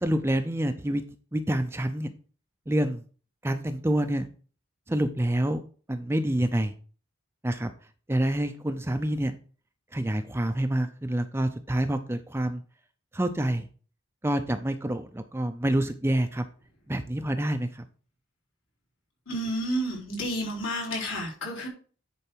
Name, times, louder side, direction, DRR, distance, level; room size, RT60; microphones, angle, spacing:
voice 1, 0.0-1.0 1.3-2.1 2.7-3.0 3.4-4.3 4.9-5.6 5.9-6.7 7.4-7.7 8.1-9.3 9.9-12.6 13.1-13.7 14.2-16.4 16.9-17.8, right 1 dB, 10° right, 8 dB, 0.5 m, -27 dB
voice 2, 19.3-21.7, equal, 70° left, -2 dB, 4.0 m, -30 dB
10.0 x 4.6 x 4.5 m, 0.40 s
head